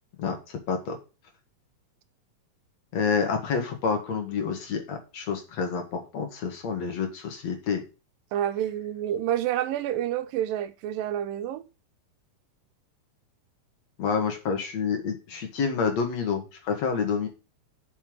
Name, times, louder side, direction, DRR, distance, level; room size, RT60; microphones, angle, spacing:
voice 1, 0.2-1.0 2.9-7.8 14.0-17.3, left 5 dB, 55° left, 2.9 m, -28 dB
voice 2, 8.3-11.7, right 11 dB, 85° right, 2.5 m, -28 dB
7.2 x 5.6 x 6.4 m
omnidirectional pair, 3.9 m